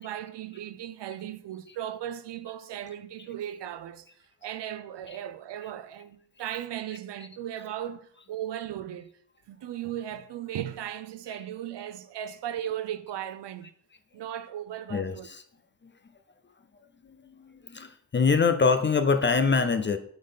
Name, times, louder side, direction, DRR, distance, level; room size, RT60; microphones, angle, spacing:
voice 1, 0.0-4.1 4.4-9.1 9.5-13.7 14.1-15.3, right 11 dB, 65° right, 0.7 m, -37 dB
voice 2, 14.9-15.4 15.8-15.9 17.0-20.0, left 5 dB, 25° left, 0.4 m, -25 dB
8.6 x 4.0 x 5.6 m
wide cardioid pair, 165°, 46 cm